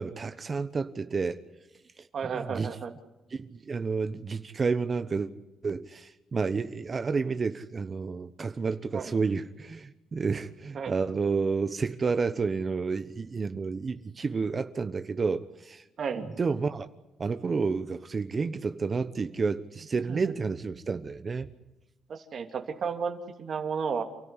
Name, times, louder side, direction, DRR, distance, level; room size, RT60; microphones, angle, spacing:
voice 1, 0.0-1.4 2.0-2.1 2.3-2.8 3.3-5.3 5.6-15.8 16.2-16.9 17.2-21.5, right 4 dB, 35° right, 1.0 m, -30 dB
voice 2, 2.1-2.9 8.9-9.1 10.7-11.0 16.0-16.3 20.1-20.3 22.1-24.0, right 6 dB, 55° right, 2.7 m, -33 dB
29.0 x 14.0 x 9.8 m
cardioid pair, 90°, 0 cm